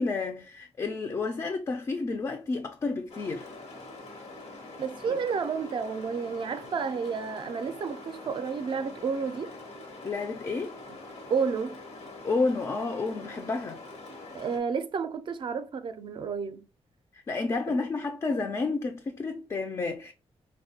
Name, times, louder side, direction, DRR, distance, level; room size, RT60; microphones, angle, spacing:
voice 1, 0.0-3.5 5.1-5.2 10.0-10.7 12.2-13.8 17.1-20.1, left 3 dB, 30° left, 0.4 m, -30 dB
sound 1, 3.1-14.6, left 2 dB, 85° left, 1.0 m, -44 dB
voice 2, 4.8-9.5 11.3-11.8 14.3-16.7, right 5 dB, 50° right, 0.4 m, -31 dB
4.1 x 2.1 x 2.7 m
wide cardioid pair, 125°, 11 cm